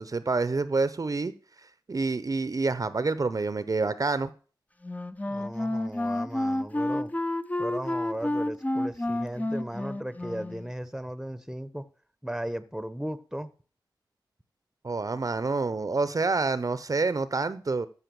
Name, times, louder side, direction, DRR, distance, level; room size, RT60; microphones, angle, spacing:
voice 1, 0.0-1.3 1.9-4.3 14.8-17.9, right 3 dB, 45° right, 0.8 m, -27 dB
Wind instrument woodwind instrument, 4.8-10.7, left 1 dB, 20° left, 0.8 m, -30 dB
voice 2, 5.3-7.1 7.6-11.8 12.2-13.5, right 1 dB, 5° right, 1.0 m, -36 dB
14.0 x 5.5 x 7.0 m
wide cardioid pair, 70°, 8 cm